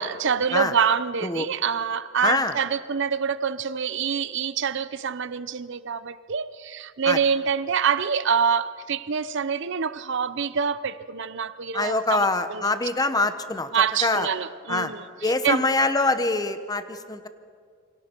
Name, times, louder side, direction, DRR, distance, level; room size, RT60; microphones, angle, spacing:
voice 1, 0.0-12.8 13.7-15.6, right 6 dB, 60° right, 15 dB, 0.7 m, -26 dB
voice 2, 2.2-2.5 7.0-7.2 11.7-13.7 14.0-14.3 14.7-14.9 15.2-17.3, left 2 dB, 20° left, 10 dB, 0.9 m, -24 dB
28.0 x 25.0 x 4.5 m, 2.1 s
head